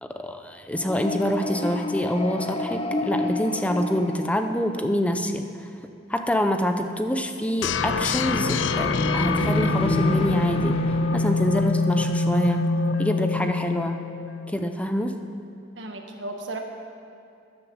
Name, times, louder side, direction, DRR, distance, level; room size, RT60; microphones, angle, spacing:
voice 1, 0.0-5.5 6.1-10.8 11.1-12.6 13.0-14.0 14.5-15.2, equal, 5° left, 6 dB, 0.6 m, -26 dB
sound 1, 0.7-5.0 7.6-12.6, left 1 dB, 30° left, 0.9 m, -29 dB
sound 2, 7.6-14.6, left 4 dB, 75° left, 0.5 m, -25 dB
voice 2, 15.7-16.6, right 2 dB, 75° right, 3 dB, 1.6 m, -34 dB
13.0 x 10.5 x 7.2 m, 2.5 s
head